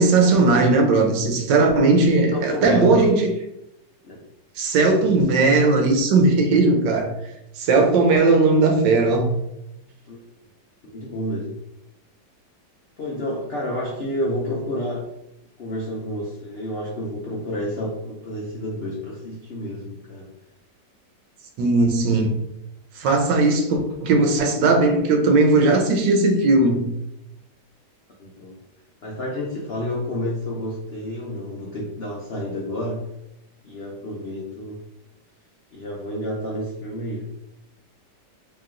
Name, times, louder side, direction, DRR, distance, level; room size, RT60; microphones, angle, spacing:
voice 1, 0.0-3.3 4.6-7.1 7.6-9.3 21.6-22.4 23.0-26.9, right 3 dB, 85° right, 3 dB, 1.4 m, -18 dB
voice 2, 2.3-3.1 4.0-4.2 10.1-10.2 10.9-11.6 13.0-15.1 15.6-20.3 28.2-28.6 29.0-33.1 33.6-34.8 35.7-37.3, left 1 dB, 70° left, -3 dB, 0.5 m, -29 dB
3.0 x 3.0 x 3.7 m, 0.85 s
omnidirectional pair, 1.9 m